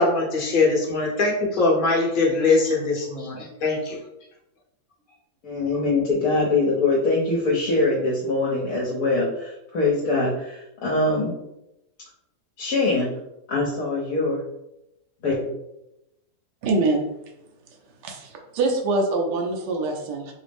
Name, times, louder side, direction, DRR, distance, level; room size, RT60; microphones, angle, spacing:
voice 1, 0.0-4.0, left 3 dB, 40° left, -3 dB, 0.9 m, -22 dB
voice 2, 5.4-11.3 12.6-13.1 13.5-14.4 15.2-15.3, left 3 dB, 70° left, -5 dB, 1.2 m, -23 dB
voice 3, 16.6-17.1 18.0-20.3, right 2 dB, 85° right, 1 dB, 1.3 m, -24 dB
5.0 x 2.0 x 3.4 m, 0.87 s
omnidirectional pair, 1.8 m